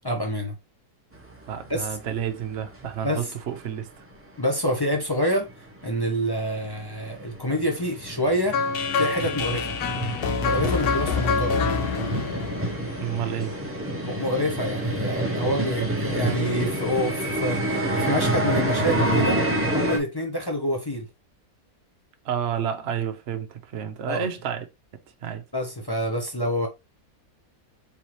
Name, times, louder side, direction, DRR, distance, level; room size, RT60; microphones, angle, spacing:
voice 1, 0.0-0.6 1.7-1.9 3.0-3.3 4.4-5.5 5.8-8.7 9.0-9.7 10.4-11.7 14.0-19.4 19.7-21.1 24.1-24.3 25.5-26.7, equal, 20° left, 0.8 m, -27 dB
sound 1, 1.1-3.2 3.5-3.6 4.1-4.2 4.5-4.6 4.9-20.0, right 1 dB, 10° right, 0.9 m, -28 dB
voice 2, 1.5-3.9 13.0-13.6 22.2-24.7 25.2-25.4, right 9 dB, 55° right, 1.0 m, -30 dB
sound 2, 8.5-13.5, left 5 dB, 85° left, 1.2 m, -27 dB
4.4 x 3.5 x 3.0 m
omnidirectional pair, 1.6 m